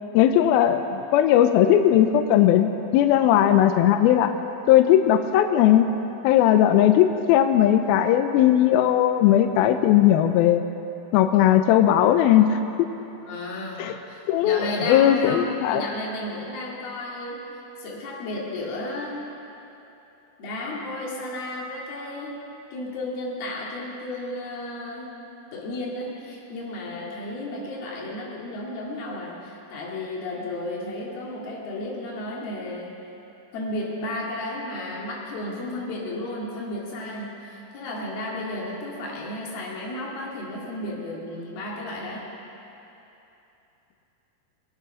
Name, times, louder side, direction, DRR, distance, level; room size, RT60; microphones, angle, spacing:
voice 1, 0.1-4.3 4.7-5.9 6.2-10.6 11.1-12.6 13.8-14.0 14.3-15.9, left 11 dB, 85° left, 7 dB, 2.2 m, -18 dB
voice 2, 13.3-17.5 17.8-19.2 20.4-22.4 22.7-25.2 25.5-33.0 33.5-42.3, left 1 dB, 65° left, -4 dB, 4.0 m, -33 dB
23.0 x 8.9 x 5.8 m, 3.0 s
omnidirectional pair, 4.8 m